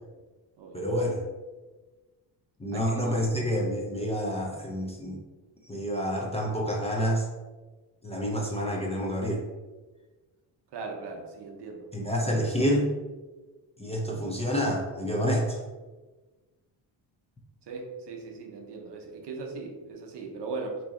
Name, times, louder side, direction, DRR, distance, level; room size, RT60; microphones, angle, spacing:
voice 1, 0.7-1.2 2.6-5.2 5.6-7.3 8.0-9.4 11.9-12.9 13.8-15.6, equal, 15° left, -2 dB, 0.5 m, -28 dB
voice 2, 10.7-11.8 17.7-20.8, right 4 dB, 60° right, 2 dB, 0.8 m, -38 dB
2.9 x 2.7 x 3.6 m, 1.2 s
cardioid pair, 100°, 48 cm